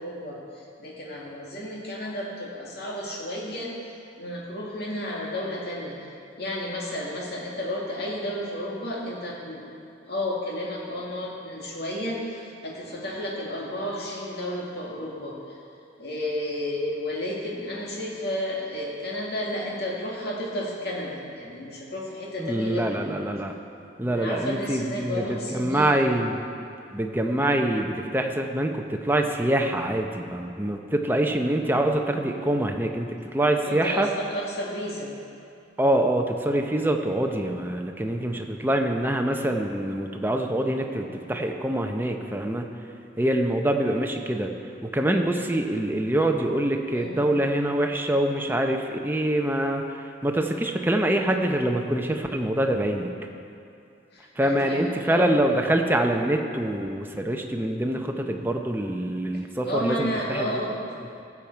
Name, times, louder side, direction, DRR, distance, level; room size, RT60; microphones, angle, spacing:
voice 1, 0.0-3.7 4.2-9.6 10.1-15.6 16.0-23.0 24.1-26.0 33.6-35.2 46.9-47.4 54.1-55.4 59.3-60.9, left 1 dB, 60° left, -3 dB, 2.2 m, -32 dB
voice 2, 22.4-23.5 24.0-26.4 26.9-34.1 35.8-42.7 43.2-44.5 44.8-53.1 54.4-60.5, right 1 dB, 10° right, 3 dB, 0.7 m, -25 dB
16.0 x 7.2 x 4.6 m, 2.6 s
head